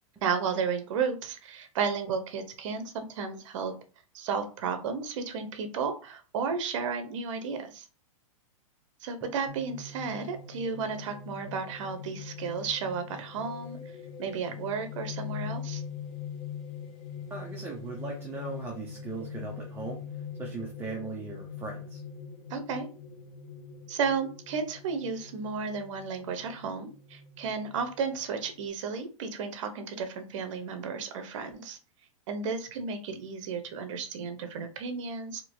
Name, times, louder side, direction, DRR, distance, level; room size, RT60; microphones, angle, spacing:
voice 1, 0.2-3.7 4.1-7.9 9.0-13.8 14.2-15.8 22.5-22.9 23.9-31.8 32.3-35.4, right 5 dB, 60° right, 7 dB, 0.7 m, -33 dB
sound 1, 9.5-28.6, left 6 dB, 40° left, 0.9 m, -42 dB
voice 2, 17.3-20.0 20.4-22.0, right 3 dB, 15° right, -1 dB, 0.5 m, -38 dB
3.0 x 2.8 x 2.6 m, 0.36 s
supercardioid pair, 145°, 18 cm